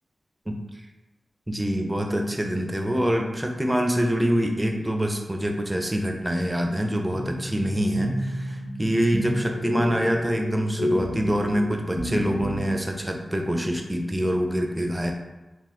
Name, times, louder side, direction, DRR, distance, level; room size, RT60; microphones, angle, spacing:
voice 1, 1.5-15.1, equal, 10° right, 2 dB, 0.4 m, -25 dB
sound 1, 7.1-12.6, left 1 dB, 70° left, 1.5 m, -30 dB
4.2 x 2.4 x 3.6 m, 1.1 s
wide cardioid pair, 135°, 0 cm